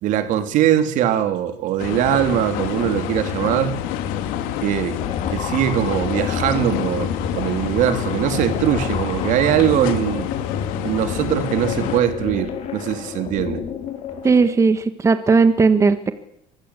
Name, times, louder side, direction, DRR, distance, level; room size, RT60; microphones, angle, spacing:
voice 1, 0.0-3.8 4.6-5.0 5.3-10.3 10.8-13.6, right 10 dB, 65° right, 9 dB, 3.2 m, -21 dB
sound 1, 1.8-12.0, left 9 dB, 80° left, 3.5 m, -27 dB
sound 2, 5.0-14.5, left 6 dB, 50° left, 5.6 m, -31 dB
voice 2, 14.2-16.1, right 4 dB, 20° right, 10 dB, 1.5 m, -16 dB
24.0 x 20.0 x 8.3 m, 0.78 s
cardioid pair, 130°, 14 cm